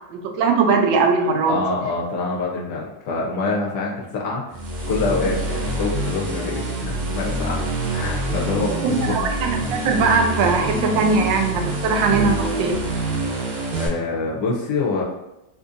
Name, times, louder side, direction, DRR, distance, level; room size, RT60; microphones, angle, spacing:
voice 1, 0.1-1.6 8.8-12.8, right 4 dB, 85° right, 3 dB, 1.3 m, -20 dB
voice 2, 1.5-4.4 4.8-7.6 7.9-9.2 13.7-15.0, left 3 dB, 70° left, -2 dB, 1.2 m, -25 dB
sound 1, 4.5-13.9, right 2 dB, 65° right, 1.3 m, -26 dB
3.7 x 2.6 x 2.5 m, 0.93 s
omnidirectional pair, 2.0 m